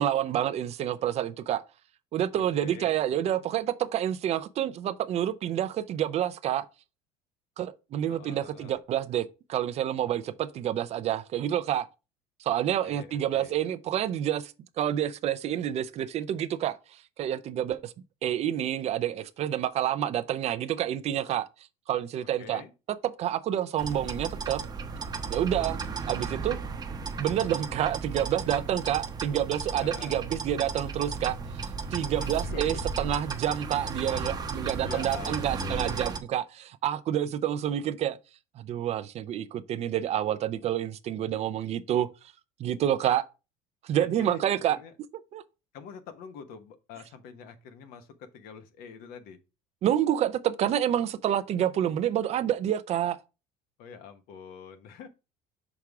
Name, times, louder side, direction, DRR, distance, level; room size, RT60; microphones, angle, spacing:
voice 1, 0.0-1.6 2.1-6.6 7.6-11.9 12.4-17.9 18.2-21.5 21.9-22.6 22.9-24.6 25.3-25.8 26.1-26.6 27.2-31.4 31.9-38.2 38.6-42.1 42.6-43.2 43.8-44.8 45.3-45.4 49.8-53.2, right 11 dB, 45° right, 0.5 m, -28 dB
voice 2, 2.3-3.0 8.1-8.8 12.8-13.5 22.4-22.7 29.8-30.2 32.1-32.9 34.8-36.1 43.9-44.4 44.7-44.9 45.7-49.4 53.8-55.1, left 6 dB, 65° left, 1.1 m, -45 dB
sound 1, 23.8-36.2, right 4 dB, 25° right, 0.8 m, -34 dB
6.0 x 3.6 x 4.6 m
cardioid pair, 125°, 16 cm